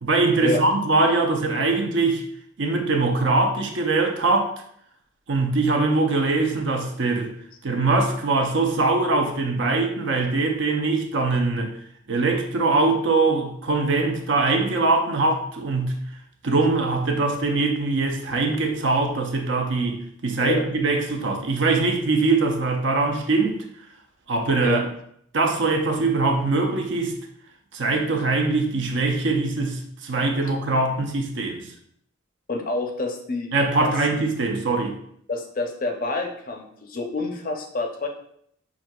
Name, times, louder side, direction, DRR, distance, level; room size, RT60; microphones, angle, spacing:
voice 1, 0.0-2.2 2.6-4.5 5.3-7.3 7.6-11.7 12.1-16.0 16.4-23.6 24.3-24.8 25.3-27.2 27.7-31.6 33.5-34.9, right 3 dB, 60° right, 3 dB, 0.6 m, -22 dB
voice 2, 32.5-33.5 33.8-33.9 35.3-38.1, left 3 dB, 45° left, 4 dB, 0.5 m, -27 dB
6.0 x 2.7 x 2.3 m, 0.69 s
head